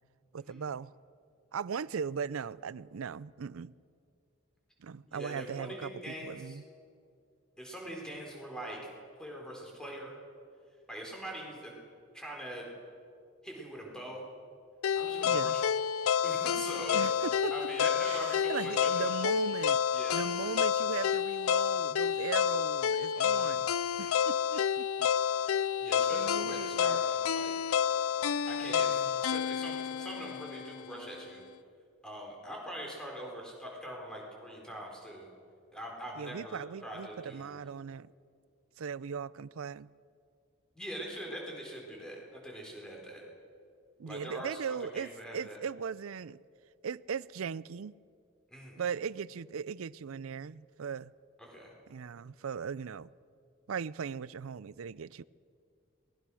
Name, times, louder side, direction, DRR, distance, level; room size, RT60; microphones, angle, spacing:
voice 1, 0.3-0.9 1.5-3.7 4.8-6.6 15.2-15.6 16.9-17.5 18.0-19.8 20.1-23.7 24.0-25.1 26.1-27.0 28.6-29.2 36.1-38.1 38.8-39.9 44.0-46.4 46.8-47.9 48.8-51.1 51.9-53.1 53.7-55.2, right 6 dB, 85° right, 0.5 m, -38 dB
voice 2, 5.1-6.6 7.6-8.8 9.2-10.1 10.9-11.7 12.1-12.7 13.4-14.2 15.0-15.7 16.2-17.0 17.5-19.1 19.9-20.2 23.2-23.7 25.8-27.6 28.5-31.4 32.0-35.3 35.7-37.6 40.7-43.2 44.0-45.6 48.5-48.8 51.4-51.7, right 1 dB, 5° left, 4.4 m, -43 dB
sound 1, 14.8-30.9, left 8 dB, 90° left, 0.4 m, -29 dB
23.5 x 20.0 x 6.4 m
head